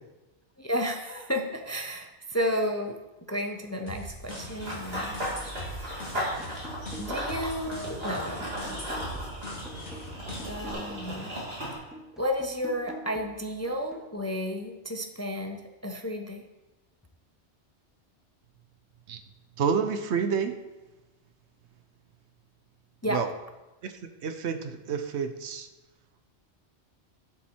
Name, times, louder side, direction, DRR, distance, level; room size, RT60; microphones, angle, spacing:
voice 1, 0.6-3.0 3.3-5.1 7.0-8.8 10.5-11.3 12.2-16.5 23.0-23.3, equal, 15° left, 4 dB, 0.6 m, -32 dB
sound 1, 3.9-10.7, left 1 dB, 80° left, 2.6 m, -41 dB
Run / Bird vocalization bird call bird song, 4.3-11.7, equal, 55° right, 3.1 m, -36 dB
sound 2, 6.1-7.3 7.7-11.2 11.6-14.1, right 1 dB, ahead, 1.3 m, -47 dB
voice 2, 19.6-20.6 23.1-23.3 23.8-23.9 24.2-25.7, right 6 dB, 75° right, 8 dB, 1.0 m, -29 dB
10.5 x 7.5 x 4.5 m, 1.1 s
omnidirectional pair, 1.2 m